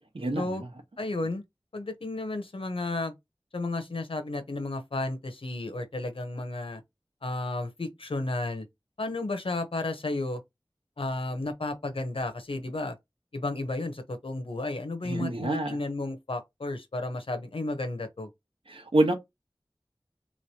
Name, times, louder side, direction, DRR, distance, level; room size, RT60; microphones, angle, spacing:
voice 1, 1.0-1.4 1.7-3.1 3.5-6.8 7.2-8.7 9.0-10.4 11.0-13.0 13.3-18.3, left 2 dB, 85° left, 0.8 m, -33 dB
voice 2, 15.0-15.8 18.7-19.1, right 1 dB, 90° right, 1.0 m, -26 dB
3.5 x 3.2 x 2.7 m
wide cardioid pair, 45°, 9 cm